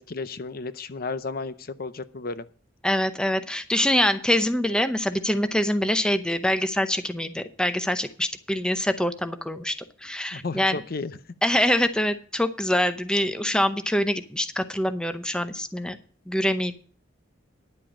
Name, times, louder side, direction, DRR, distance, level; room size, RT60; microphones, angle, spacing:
voice 1, 0.0-2.5 10.3-11.2, left 3 dB, 50° left, 14 dB, 0.6 m, -33 dB
voice 2, 2.8-9.7 10.0-10.8 11.4-16.0 16.3-16.7, left 1 dB, 5° left, 10 dB, 0.7 m, -24 dB
10.5 x 7.6 x 6.0 m, 0.43 s
head